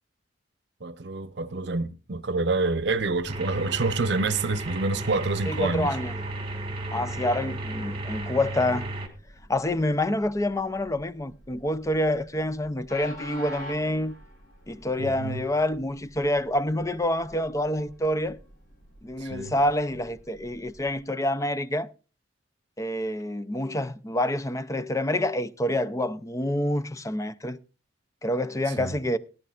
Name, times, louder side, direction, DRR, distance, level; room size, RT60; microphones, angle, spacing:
voice 1, 0.8-6.0 15.0-15.4 19.2-19.6 28.7-28.9, right 3 dB, 65° right, 0.8 m, -27 dB
Train, 2.5-21.0, equal, 50° left, 5.0 m, -49 dB
sound 1, 3.3-9.1, right 2 dB, 30° right, 2.1 m, -33 dB
voice 2, 5.5-6.1 6.9-8.9 9.5-14.2 14.7-18.4 19.0-21.9 22.8-27.6 28.2-29.2, left 1 dB, 15° left, 0.5 m, -27 dB
19.0 x 11.0 x 2.4 m
head